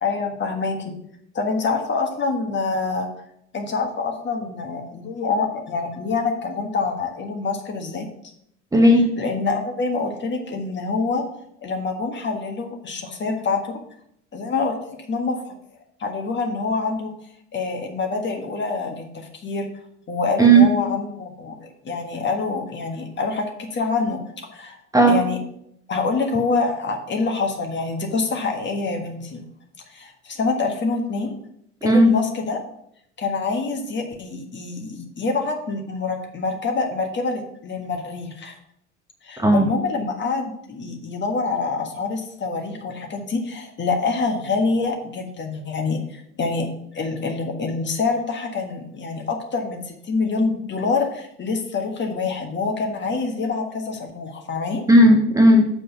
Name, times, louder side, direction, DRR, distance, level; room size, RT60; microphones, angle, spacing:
voice 1, 0.0-0.9 1.3-3.1 3.5-8.1 9.2-11.2 11.6-13.8 14.3-15.5 16.0-17.1 17.5-19.7 20.1-24.2 24.5-24.8 25.1-25.4 25.9-29.4 29.9-31.4 31.8-32.6 33.2-38.6 39.2-46.7 46.9-54.8, left 4 dB, 30° left, 3 dB, 1.5 m, -26 dB
voice 2, 8.7-9.1 20.4-20.7 24.9-25.2 31.8-32.1 39.4-39.7 54.9-55.7, right 1 dB, 10° right, 2 dB, 1.1 m, -13 dB
6.9 x 4.9 x 5.9 m, 0.74 s
hypercardioid pair, 70°, 34 cm